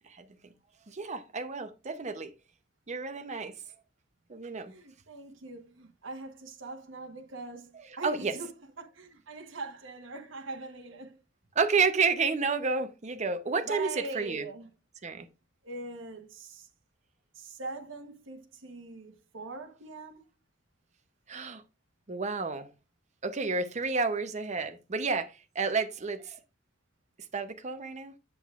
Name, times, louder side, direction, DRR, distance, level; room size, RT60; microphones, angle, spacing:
voice 1, 0.9-2.3 2.9-3.5 4.3-4.7 8.0-8.3 11.6-14.5 15.0-15.3 21.3-21.6 22.1-22.7 23.2-26.4 27.3-28.1, right 4 dB, 35° right, 0.7 m, -30 dB
voice 2, 4.7-11.2 13.7-14.7 15.6-16.7 17.3-20.2, right 3 dB, 75° right, 1.1 m, -42 dB
7.8 x 7.3 x 2.4 m
head